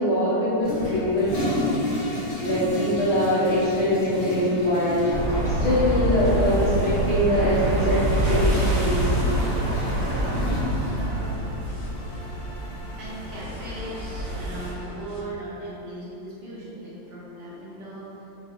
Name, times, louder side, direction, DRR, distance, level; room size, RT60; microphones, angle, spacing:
voice 1, 0.0-1.7 2.4-5.2 5.5-9.1, left 1 dB, 70° left, -12 dB, 0.6 m, -23 dB
Toilet flush, 0.6-13.4, left 1 dB, 45° left, 0.9 m, -33 dB
sound 1, 5.1-14.7, right 1 dB, 85° right, 1.8 m, -26 dB
sound 2, 8.4-15.2, equal, 85° left, 1.5 m, -43 dB
voice 2, 9.8-11.4 13.0-18.3, right 1 dB, 65° right, -7 dB, 1.2 m, -39 dB
4.7 x 2.2 x 3.8 m, 3.0 s
omnidirectional pair, 2.3 m